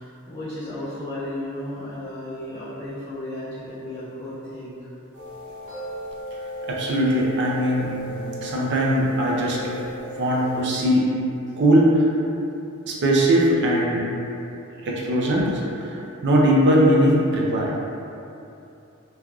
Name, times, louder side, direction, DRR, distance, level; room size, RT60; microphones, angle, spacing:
voice 1, 0.0-4.7 10.4-10.5, left 1 dB, 25° left, -14 dB, 0.6 m, -34 dB
sound 1, 5.1-10.8, equal, 80° right, 1.1 m, -35 dB
voice 2, 6.7-9.7 10.2-11.1 11.6-12.0 12.9-14.0 14.8-15.9 16.2-17.7, right 1 dB, 55° right, -3 dB, 0.4 m, -20 dB
3.2 x 2.3 x 2.4 m, 2.8 s
head